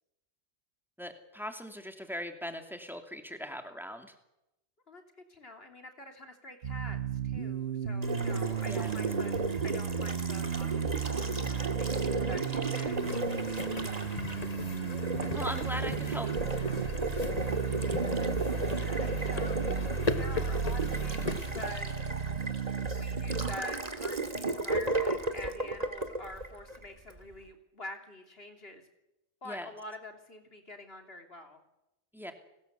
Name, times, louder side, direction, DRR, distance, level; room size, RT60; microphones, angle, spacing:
voice 1, 1.0-4.1 8.6-9.0 15.3-16.3 29.4-29.7 32.1-32.3, equal, ahead, 5 dB, 2.6 m, -39 dB
voice 2, 5.3-9.3 9.6-13.0 18.7-19.7 20.2-21.9 22.8-28.8 29.4-31.6, left 2 dB, 65° left, 5 dB, 3.5 m, -46 dB
sound 1, 6.6-23.6, right 6 dB, 75° right, 1.5 m, -34 dB
Water tap faucet, 8.0-27.2, right 3 dB, 35° right, 2.1 m, -35 dB
sound 2, 13.0-21.7, left 4 dB, 35° left, 1.3 m, -39 dB
30.0 x 19.5 x 8.2 m, 0.94 s
omnidirectional pair, 1.1 m